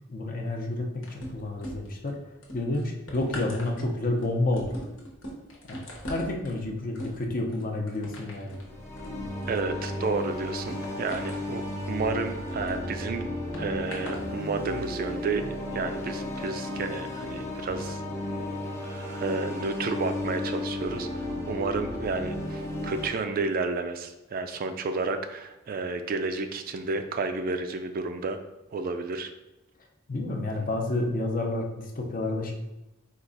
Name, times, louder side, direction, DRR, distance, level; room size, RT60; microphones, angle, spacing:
voice 1, 0.1-2.2 2.5-4.8 5.7-8.6 30.1-32.5, left 2 dB, 45° left, 2 dB, 0.6 m, -30 dB
sound 1, 1.0-2.1 2.4-12.8 13.5-14.2 15.0-15.1, equal, 80° left, 1.1 m, -42 dB
sound 2, 8.5-23.1, left 1 dB, 15° left, 0.9 m, -34 dB
voice 2, 9.5-13.3 13.6-15.5 15.7-18.0 18.8-28.4 28.7-29.3, right 3 dB, 45° right, 8 dB, 0.3 m, -31 dB
4.6 x 2.4 x 3.8 m, 0.96 s
head